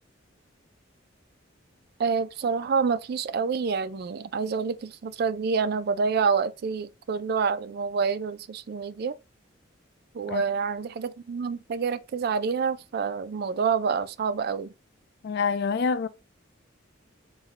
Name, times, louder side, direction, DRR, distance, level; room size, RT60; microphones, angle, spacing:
voice 1, 2.0-9.2 10.1-14.7, right 5 dB, 50° right, 0.3 m, -27 dB
voice 2, 15.2-16.1, left 5 dB, 55° left, 0.4 m, -26 dB
4.0 x 2.2 x 3.8 m
head